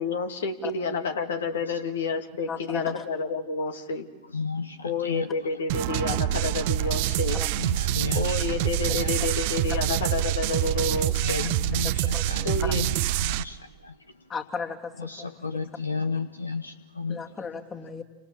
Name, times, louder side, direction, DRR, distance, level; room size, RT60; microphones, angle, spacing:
voice 1, 0.0-4.1 4.8-7.4 8.1-11.5 12.4-12.8, left 4 dB, 65° left, 6 dB, 2.4 m, -29 dB
voice 2, 2.5-3.0 7.3-7.5 9.7-9.8 11.8-12.7 14.3-15.6 17.1-18.0, left 5 dB, 20° left, 4 dB, 2.6 m, -36 dB
voice 3, 4.3-5.3 7.6-9.1 11.2-13.9 15.0-17.2, left 4 dB, 80° left, 11 dB, 1.1 m, -33 dB
sound 1, 5.7-13.4, right 14 dB, 50° right, 0.9 m, -26 dB
29.5 x 25.0 x 7.3 m, 1.2 s
figure-of-eight pair, 90°, 0 cm